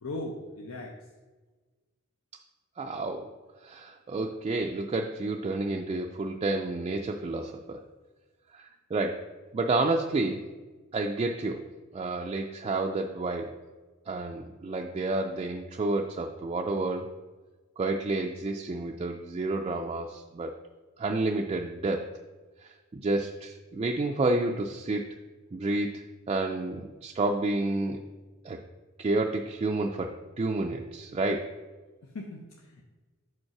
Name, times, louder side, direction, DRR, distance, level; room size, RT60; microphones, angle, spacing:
voice 1, 0.0-0.9 32.0-32.8, left 2 dB, 80° left, 1 dB, 0.6 m, -38 dB
voice 2, 2.8-3.3 3.6-7.8 8.5-10.4 10.9-11.6 11.9-13.6 14.1-17.1 17.8-20.5 21.0-22.1 22.6-25.2 25.5-28.0 28.4-28.6 29.0-31.5, right 2 dB, 30° right, 2 dB, 0.3 m, -30 dB
5.3 x 3.8 x 5.8 m, 1.3 s
head